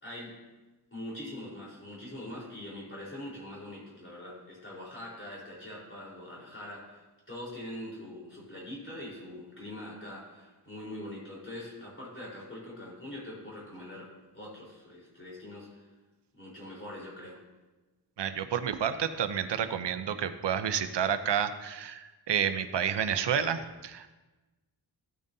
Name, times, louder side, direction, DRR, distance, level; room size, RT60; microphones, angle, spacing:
voice 1, 0.0-0.4 0.9-15.9 16.3-17.4, left 1 dB, 30° left, -6 dB, 3.9 m, -43 dB
voice 2, 18.2-24.1, right 8 dB, 75° right, 10 dB, 0.7 m, -30 dB
14.5 x 8.9 x 2.7 m, 1.2 s
wide cardioid pair, 110°, 42 cm